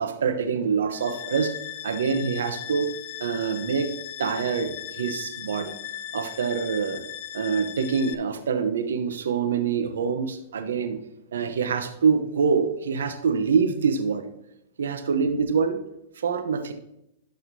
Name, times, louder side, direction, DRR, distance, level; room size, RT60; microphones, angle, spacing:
voice 1, 0.0-1.5 1.8-2.9 3.2-3.9 4.2-5.7 6.1-7.0 7.3-11.0 11.3-14.3 14.8-15.8 16.2-16.7, right 6 dB, 80° right, 8 dB, 0.8 m, -25 dB
sound 1, 0.9-8.1, left 12 dB, 55° left, 0.8 m, -38 dB
11.5 x 6.4 x 2.7 m, 0.82 s
hypercardioid pair, 120°, 0 cm